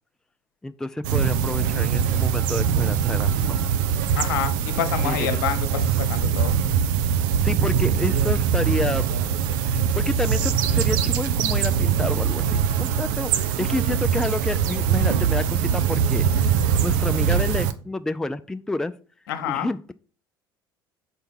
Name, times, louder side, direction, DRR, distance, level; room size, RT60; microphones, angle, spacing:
voice 1, 0.6-3.7 5.0-5.3 7.2-9.1 9.7-16.5 16.8-18.9 19.5-19.9, left 2 dB, 5° left, 10 dB, 0.4 m, -29 dB
sound 1, 1.0-17.7, right 8 dB, 60° right, 0.6 m, -22 dB
voice 2, 4.2-6.5 19.3-19.7, left 9 dB, 65° left, 7 dB, 1.0 m, -27 dB
6.7 x 4.5 x 5.4 m, 0.38 s
figure-of-eight pair, 60°, 12 cm